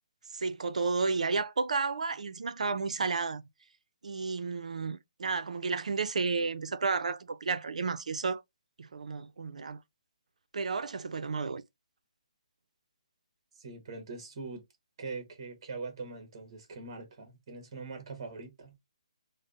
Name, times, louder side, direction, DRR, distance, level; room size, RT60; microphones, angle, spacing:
voice 1, 0.3-3.4 4.0-8.4 8.8-9.8 10.5-11.6, right 4 dB, 75° right, 0.6 m, -32 dB
voice 2, 13.5-14.6 15.0-18.8, right 4 dB, 35° right, 1.4 m, -42 dB
3.3 x 2.1 x 3.7 m
hypercardioid pair, 170°, 4 cm